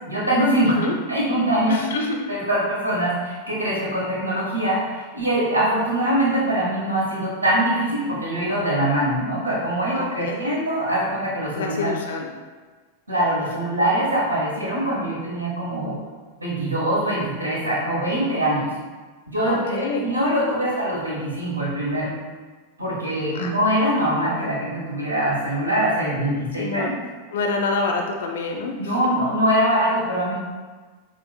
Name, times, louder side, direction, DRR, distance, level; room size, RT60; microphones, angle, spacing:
voice 1, 0.1-0.7 1.1-1.8 2.3-12.0 13.1-16.0 16.4-18.7 19.3-22.1 22.8-26.9 28.8-30.3, right 1 dB, 80° right, -5 dB, 1.2 m, -23 dB
voice 2, 1.7-2.2 9.9-10.4 11.6-12.3 19.5-20.1 23.3-23.5 26.6-26.9 27.3-28.9, left 3 dB, 60° left, 2 dB, 0.4 m, -26 dB
6.2 x 2.5 x 2.3 m, 1.4 s
figure-of-eight pair, 90°, 0 cm